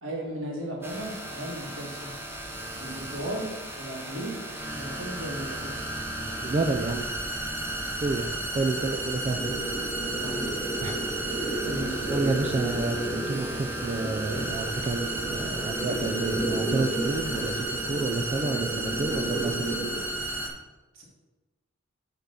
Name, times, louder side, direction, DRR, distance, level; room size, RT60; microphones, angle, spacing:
voice 1, 0.0-2.1 2.8-3.5 3.7-4.4 4.7-5.9 8.7-9.0 9.3-9.5 10.1-10.4 11.6-12.1 20.9-21.0, right 1 dB, 80° right, -2 dB, 2.0 m, -36 dB
sound 1, 0.8-20.5, right 1 dB, 10° right, 0.9 m, -33 dB
voice 2, 6.4-7.1 8.0-8.3 8.5-9.4 10.8-11.0 11.4-11.6 12.1-19.8, right 3 dB, 35° right, 4 dB, 0.4 m, -30 dB
sound 2, 8.5-20.0, right 2 dB, 10° left, 1.9 m, -33 dB
7.1 x 3.7 x 5.7 m, 1.2 s
head